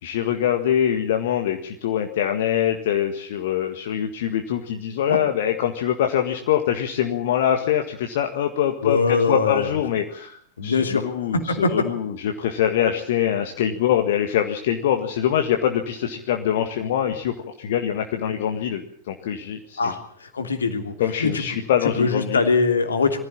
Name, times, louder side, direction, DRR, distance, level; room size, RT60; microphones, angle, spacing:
voice 1, 0.0-19.9 21.0-22.4, left 10 dB, 55° left, 5 dB, 1.7 m, -24 dB
voice 2, 8.8-9.7 10.6-11.1 11.3-11.9 19.8-20.9 21.2-21.4 22.0-23.2, left 4 dB, 70° left, 6 dB, 2.9 m, -22 dB
23.0 x 15.5 x 8.7 m, 0.62 s
figure-of-eight pair, 90°, 0 cm